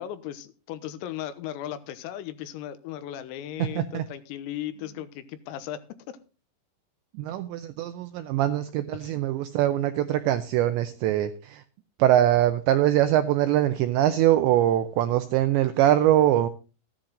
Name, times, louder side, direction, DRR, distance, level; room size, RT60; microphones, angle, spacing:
voice 1, 0.0-5.8 6.1-6.2 8.9-9.2, left 11 dB, 85° left, 12 dB, 3.7 m, -36 dB
voice 2, 7.1-11.6 12.0-16.5, right 12 dB, 85° right, 9 dB, 2.5 m, -23 dB
14.5 x 10.5 x 3.8 m, 0.34 s
omnidirectional pair, 6.0 m